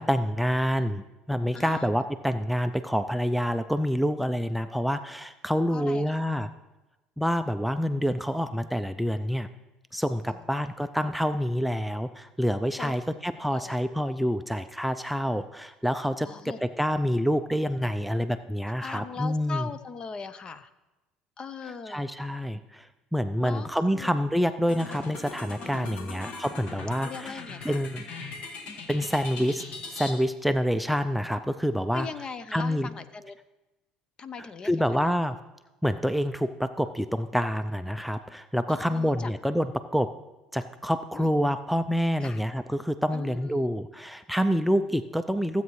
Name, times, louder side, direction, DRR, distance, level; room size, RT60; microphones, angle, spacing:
voice 1, 0.0-6.5 7.2-9.5 9.9-19.7 21.9-28.0 28.9-29.6 29.9-32.1 32.5-32.9 34.6-35.4 35.8-40.1 40.5-45.6, equal, ahead, 9 dB, 0.4 m, -27 dB
voice 2, 1.5-1.9 5.7-6.2 10.3-10.5 12.8-13.7 16.2-16.6 18.8-20.7 21.4-22.0 23.4-24.2 25.8-26.1 27.0-27.8 31.9-33.4 34.2-35.1 38.7-39.3 41.1-41.3 42.2-42.4 43.1-43.7, left 5 dB, 35° left, 13 dB, 0.6 m, -40 dB
sound 1, 24.7-30.1, left 3 dB, 60° left, 1.6 m, -40 dB
15.5 x 8.2 x 3.2 m, 1.0 s
supercardioid pair, 90°, 2 cm